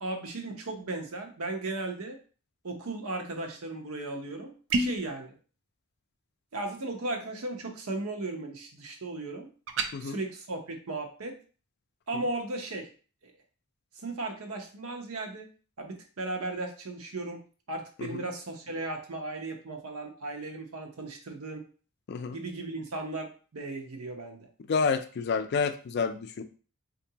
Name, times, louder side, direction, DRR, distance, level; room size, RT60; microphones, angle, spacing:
voice 1, 0.0-2.2 2.6-5.3 6.5-9.5 10.0-11.3 12.1-12.9 13.2-13.3 14.0-15.5 15.8-17.4 17.7-21.6 22.3-24.5, right 2 dB, 80° right, 3 dB, 0.8 m, -36 dB
sound 1, 4.7-5.1 9.7-9.9, right 2 dB, 60° right, 0.4 m, -28 dB
voice 2, 24.7-26.4, left 5 dB, 50° left, 9 dB, 0.3 m, -29 dB
4.5 x 2.6 x 2.8 m, 0.39 s
head